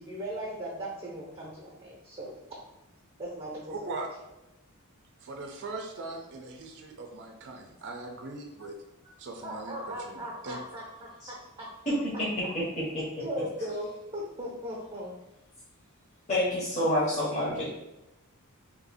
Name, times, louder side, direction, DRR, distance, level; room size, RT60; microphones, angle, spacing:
voice 1, 0.0-2.3 3.2-3.6 9.4-11.7 13.2-15.1, equal, 20° right, -4 dB, 0.7 m, -38 dB
voice 2, 3.7-4.1 5.2-8.8 9.2-10.6, right 3 dB, 55° right, 3 dB, 0.4 m, -40 dB
voice 3, 16.3-17.7, left 1 dB, 35° left, -8 dB, 0.9 m, -27 dB
2.8 x 2.6 x 4.0 m, 0.95 s
head